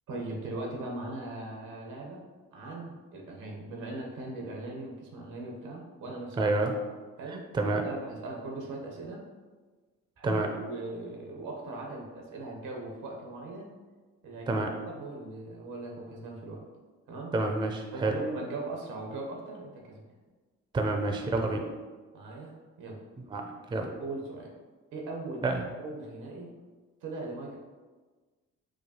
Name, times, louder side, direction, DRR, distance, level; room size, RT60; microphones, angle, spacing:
voice 1, 0.1-2.2 2.5-6.4 7.2-7.4 7.8-9.2 10.2-13.7 14.2-16.6 17.1-17.3 17.9-20.0 22.1-22.5 22.8-23.0 24.0-24.5 24.9-26.5 27.0-27.6, right 2 dB, 85° right, -1 dB, 0.9 m, -39 dB
voice 2, 6.4-6.7 7.3-7.8 10.2-10.5 14.5-14.7 17.3-18.2 20.7-21.6 23.2-23.9 25.4-25.7, right 2 dB, 15° right, 3 dB, 0.4 m, -29 dB
4.7 x 2.4 x 2.8 m, 1.4 s
cardioid pair, 90°, 30 cm